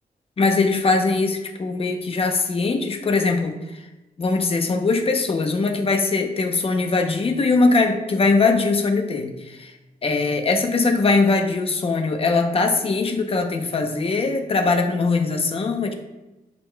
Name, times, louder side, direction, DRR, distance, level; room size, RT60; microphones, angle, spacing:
voice 1, 0.4-3.8 4.2-9.7 10.0-15.9, left 3 dB, 40° left, 5 dB, 0.7 m, -21 dB
10.0 x 5.3 x 2.2 m, 1.1 s
wide cardioid pair, 165°, 16 cm